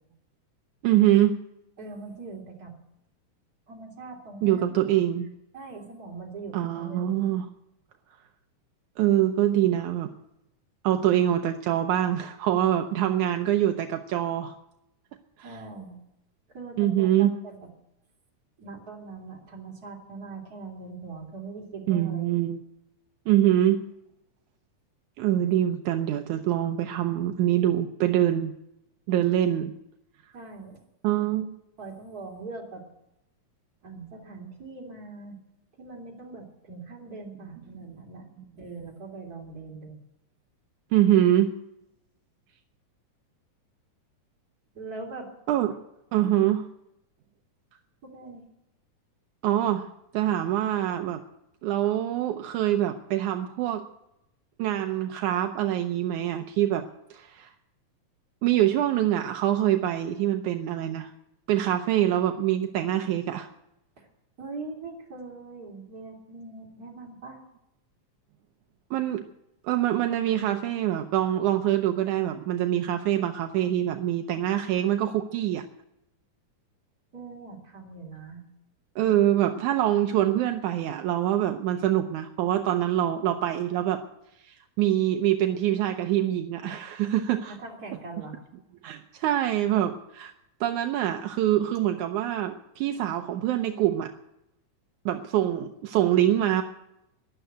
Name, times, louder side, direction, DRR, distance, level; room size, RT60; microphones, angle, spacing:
voice 1, 0.8-1.4 4.4-5.3 6.5-7.5 9.0-10.1 10.8-14.5 15.4-15.6 16.8-17.3 21.9-22.6 23.3-23.8 25.2-28.5 29.1-29.7 31.0-31.6 40.9-41.5 45.5-45.8 46.1-46.6 49.4-49.9 50.1-51.2 51.6-53.8 54.6-57.5 58.4-61.1 61.5-63.5 68.9-69.3 69.6-75.6 79.0-84.0 84.4-87.6 88.8-90.3 90.6-94.1 95.1-96.6, right 12 dB, 75° right, 6 dB, 2.1 m, -24 dB
voice 2, 1.8-2.7 3.7-4.6 5.5-7.1 15.4-16.0 16.5-17.6 18.6-22.4 30.3-30.8 31.8-32.8 33.8-35.4 35.8-38.3 38.6-40.0 44.8-45.3 46.2-46.3 48.0-48.4 64.0-64.1 64.4-67.4 77.1-78.4 87.5-88.4, right 3 dB, 30° right, -1 dB, 3.4 m, -41 dB
12.5 x 11.5 x 7.9 m, 0.84 s
omnidirectional pair, 3.6 m